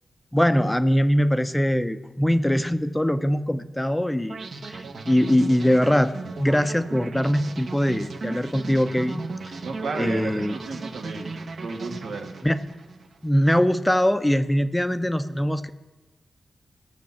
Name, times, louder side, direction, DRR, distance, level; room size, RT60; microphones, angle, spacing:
voice 1, 0.3-4.4 4.6-6.1 6.4-9.5 9.9-10.6 12.4-12.6 13.2-15.7, equal, 5° left, 11 dB, 0.6 m, -22 dB
sound 1, 4.3-13.3, right 3 dB, 65° right, 1.2 m, -36 dB
voice 2, 9.6-11.3 11.6-12.3, right 3 dB, 90° right, 2 dB, 2.0 m, -33 dB
17.0 x 6.7 x 7.2 m, 1.2 s
wide cardioid pair, 115°, 0 cm